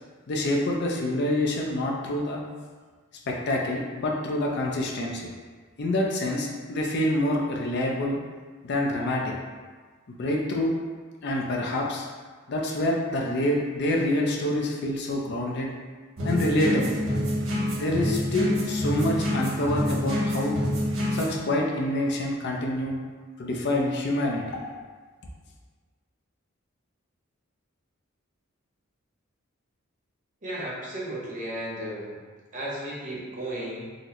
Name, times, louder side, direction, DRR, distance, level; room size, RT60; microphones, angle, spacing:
voice 1, 0.3-2.4 3.3-5.3 5.8-8.2 8.6-9.3 10.2-10.7 11.2-12.1 12.5-15.7 16.2-17.0 17.8-20.6 21.1-23.0 23.4-24.6, left 1 dB, 55° left, -1 dB, 0.4 m, -26 dB
sound 1, 16.2-21.4, left 1 dB, 75° right, 0.8 m, -27 dB
voice 2, 30.4-32.2 32.5-34.0, right 1 dB, 40° right, -6 dB, 0.8 m, -34 dB
3.8 x 2.0 x 2.8 m, 1.4 s
head